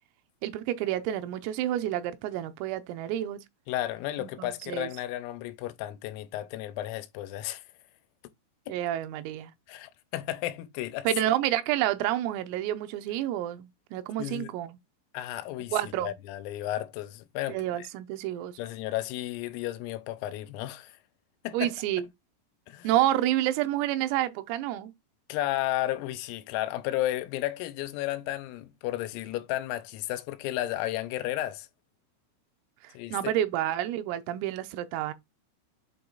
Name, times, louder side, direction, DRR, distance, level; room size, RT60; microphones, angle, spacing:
voice 1, 0.4-3.4 4.2-4.9 8.7-9.5 11.1-14.8 15.7-16.1 17.5-18.5 21.5-22.1 22.9-24.9 32.8-35.1, right 13 dB, 85° right, 3.4 m, -29 dB
voice 2, 3.7-7.6 8.7-8.8 9.7-11.1 14.2-14.6 15.1-17.9 18.6-21.0 21.5-21.7 22.7-22.9 25.3-31.7 33.0-33.3, left 14 dB, 90° left, 3.4 m, -33 dB
8.4 x 3.0 x 3.9 m
omnidirectional pair, 5.9 m